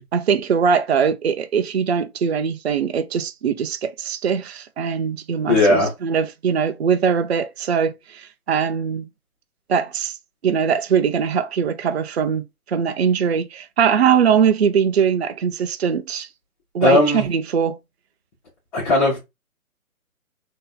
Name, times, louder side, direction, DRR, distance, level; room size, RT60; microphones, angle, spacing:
voice 1, 0.1-9.1 9.7-10.1 10.4-16.3 16.7-17.8, right 7 dB, 45° right, 0.5 m, -21 dB
voice 2, 5.5-5.9 16.8-17.2 18.7-19.2, left 2 dB, 25° left, 1.4 m, -17 dB
3.9 x 2.8 x 3.9 m
hypercardioid pair, 150°, 44 cm